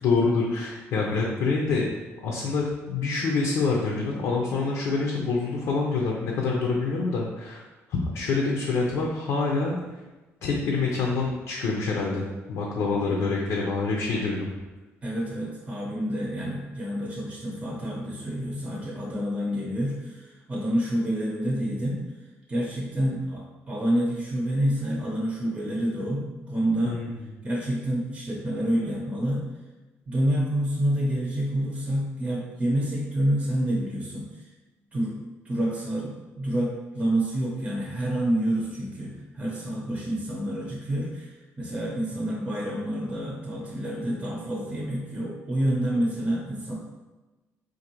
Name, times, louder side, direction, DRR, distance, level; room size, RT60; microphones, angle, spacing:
voice 1, 0.0-1.9 2.2-7.6 7.9-9.8 10.4-14.5 26.8-27.1, left 4 dB, 80° left, -2 dB, 0.6 m, -26 dB
voice 2, 15.0-22.0 22.5-27.0 27.4-29.5 30.1-34.4 34.9-35.2 35.4-46.7, right 1 dB, 20° right, -3 dB, 0.7 m, -28 dB
3.8 x 2.6 x 3.0 m, 1.2 s
cardioid pair, 100°, 5 cm